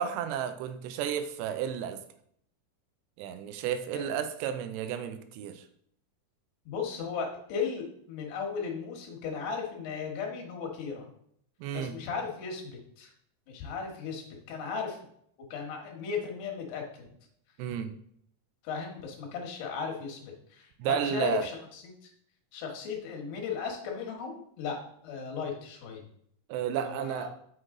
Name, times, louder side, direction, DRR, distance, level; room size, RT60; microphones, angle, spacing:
voice 1, 0.0-2.0 3.2-5.6 11.6-11.9 17.6-17.9 20.8-21.5 26.5-27.3, right 9 dB, 85° right, 9 dB, 2.7 m, -32 dB
voice 2, 6.7-11.1 11.7-13.1 13.5-15.0 15.5-17.1 18.6-22.1 22.5-24.8 25.0-26.0 26.8-27.3, left 6 dB, 75° left, 1 dB, 3.3 m, -36 dB
6.5 x 6.3 x 3.7 m, 0.68 s
omnidirectional pair, 5.0 m